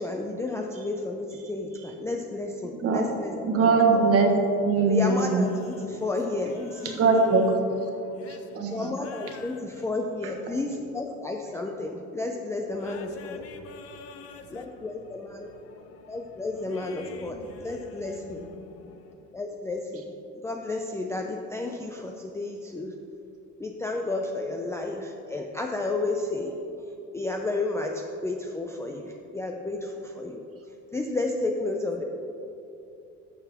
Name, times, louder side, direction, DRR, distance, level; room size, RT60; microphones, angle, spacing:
voice 1, 0.0-4.0 4.9-7.0 8.7-13.4 14.5-15.5 16.1-18.5 19.3-20.0 20.3-23.0 23.6-26.5 27.1-30.4 30.9-32.0, left 2 dB, 10° left, 2 dB, 0.4 m, -32 dB
voice 2, 3.4-4.3 4.6-5.4 6.9-7.9 8.3-8.9 10.2-10.3, right 3 dB, 50° right, 2 dB, 1.4 m, -22 dB
voice 3, 7.9-8.6 9.0-9.6 12.8-14.7 15.5-16.1 16.7-19.1, left 5 dB, 50° left, 7 dB, 0.8 m, -47 dB
11.5 x 6.9 x 3.5 m, 2.8 s
cardioid pair, 125°, 31 cm